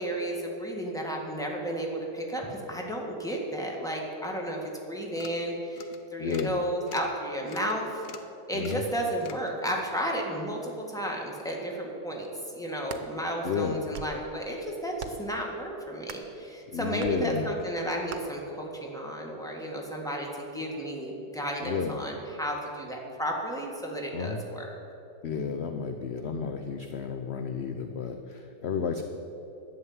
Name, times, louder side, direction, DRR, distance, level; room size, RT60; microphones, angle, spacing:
voice 1, 0.0-8.0 8.5-12.3 12.5-24.7, right 1 dB, ahead, 0 dB, 1.6 m, -33 dB
sound 1, 4.7-4.8 5.1-5.4 5.7-6.0 6.3-6.6 6.9-7.1 7.5-7.7 8.0-8.3 8.6-8.9 9.2-9.5, left 7 dB, 80° left, 1.4 m, -45 dB
voice 2, 6.2-6.5 8.5-8.9 13.4-13.8 16.7-17.5 21.6-22.0 24.1-24.4 25.2-29.0, left 6 dB, 60° left, 6 dB, 0.7 m, -32 dB
sound 2, 12.7-13.1 13.7-14.2 15.0-15.3 16.0-16.4 17.0-17.2 18.1-18.2, right 7 dB, 75° right, 1.4 m, -41 dB
11.0 x 7.2 x 9.4 m, 2.9 s
omnidirectional pair, 1.8 m